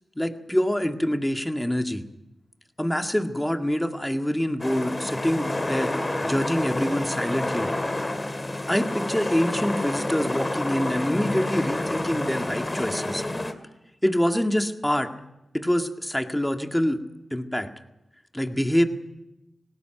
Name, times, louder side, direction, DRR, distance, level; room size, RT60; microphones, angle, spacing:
voice 1, 0.2-2.1 2.8-7.7 8.7-13.2 14.0-15.1 15.5-17.0 17.3-17.7 18.3-18.8, equal, 10° left, 6 dB, 1.9 m, -25 dB
Helicopter Hover - - Output - Stereo Out, 4.6-13.5, left 1 dB, 30° left, 2.4 m, -29 dB
19.0 x 16.5 x 9.2 m, 0.92 s
cardioid pair, 45°, 0 cm